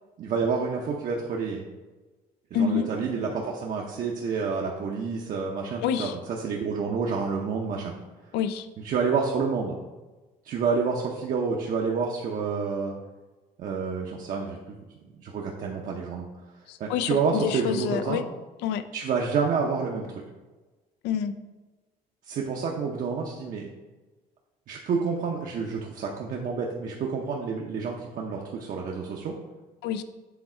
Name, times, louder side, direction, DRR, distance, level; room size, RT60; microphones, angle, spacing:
voice 1, 0.2-1.6 2.5-7.9 8.8-9.8 10.4-12.9 13.6-14.6 15.1-16.3 16.8-18.2 18.9-20.2 22.3-23.7 24.7-29.3, right 5 dB, 55° right, -1 dB, 0.7 m, -29 dB
voice 2, 2.5-2.9 5.8-6.2 8.3-8.7 16.7-18.2 18.6-18.8 21.0-21.3 29.8-30.0, left 8 dB, 90° left, 11 dB, 0.5 m, -27 dB
7.1 x 3.5 x 4.3 m, 1.2 s
cardioid pair, 110°, 17 cm